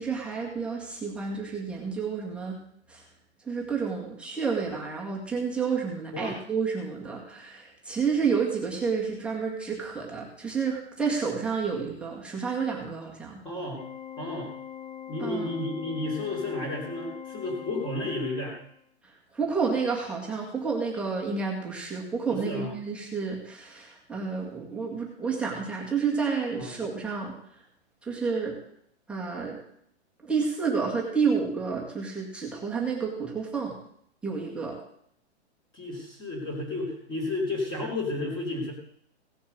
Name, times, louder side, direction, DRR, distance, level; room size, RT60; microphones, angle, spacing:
voice 1, 0.0-2.6 2.9-3.0 3.5-13.4 15.2-15.5 19.3-27.3 28.1-28.6 29.1-29.6 30.2-33.8 34.2-34.8, right 5 dB, 5° right, -3 dB, 1.8 m, -30 dB
voice 2, 13.4-13.8 14.2-14.5 15.1-18.6 22.3-22.7 26.6-26.8 35.7-38.7, left 2 dB, 15° left, 0 dB, 3.2 m, -32 dB
Organ, 13.8-18.8, left 9 dB, 40° left, 2.1 m, -42 dB
17.0 x 6.9 x 6.7 m, 0.69 s
hypercardioid pair, 170°, 34 cm